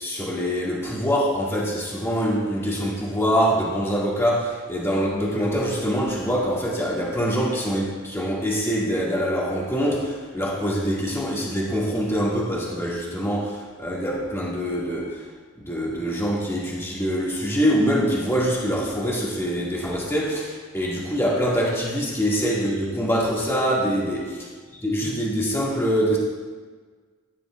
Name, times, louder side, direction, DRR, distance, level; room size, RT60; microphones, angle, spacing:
voice 1, 0.0-15.2 15.6-24.2 24.8-26.2, equal, 10° left, -5 dB, 1.9 m, -24 dB
14.0 x 10.0 x 2.4 m, 1.4 s
head